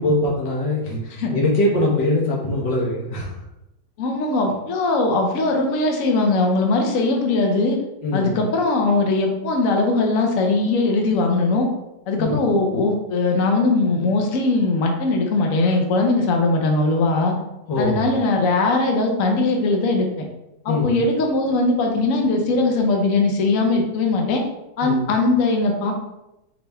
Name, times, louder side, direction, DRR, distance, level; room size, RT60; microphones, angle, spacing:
voice 1, 0.0-3.3 8.0-8.4 12.2-12.5 17.7-18.1 20.7-21.0 24.8-25.1, left 2 dB, 80° left, -2 dB, 1.7 m, -22 dB
voice 2, 4.0-7.8 8.1-11.7 12.1-17.4 17.8-20.2 20.6-24.4 24.8-25.9, left 3 dB, 60° left, 2 dB, 0.9 m, -20 dB
4.2 x 3.3 x 3.4 m, 0.91 s
omnidirectional pair, 1.9 m